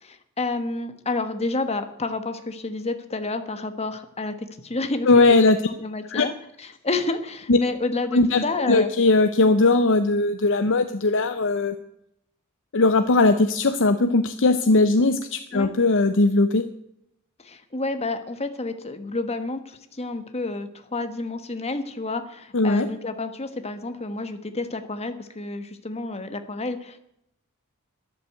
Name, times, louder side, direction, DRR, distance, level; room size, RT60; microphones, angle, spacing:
voice 1, 0.0-4.3 4.6-5.4 5.7-6.3 6.6-8.9 15.5-15.7 17.4-27.0, left 3 dB, 30° left, 8 dB, 1.2 m, -30 dB
voice 2, 5.1-5.6 6.1-6.3 7.5-7.6 8.1-11.7 12.7-16.7 22.5-22.9, left 3 dB, 55° left, 9 dB, 0.7 m, -19 dB
12.5 x 10.5 x 7.8 m, 0.77 s
head